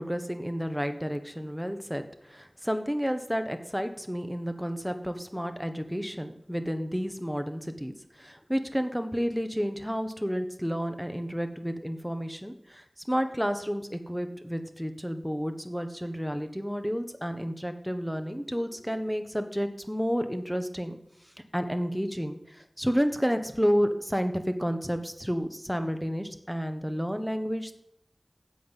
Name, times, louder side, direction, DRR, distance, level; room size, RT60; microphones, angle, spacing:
voice 1, 0.0-21.0 21.5-27.7, equal, ahead, 8 dB, 1.3 m, -31 dB
9.4 x 7.8 x 8.3 m, 0.75 s
wide cardioid pair, 45°, 0 cm